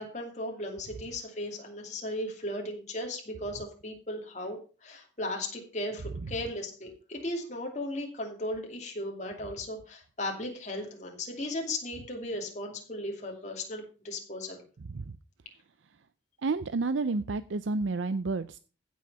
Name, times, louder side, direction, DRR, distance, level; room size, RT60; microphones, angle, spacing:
voice 1, 0.0-14.6, left 1 dB, 40° left, 1 dB, 2.7 m, -36 dB
voice 2, 16.4-18.6, right 3 dB, 90° right, 13 dB, 0.6 m, -30 dB
15.5 x 6.4 x 5.5 m, 0.36 s
head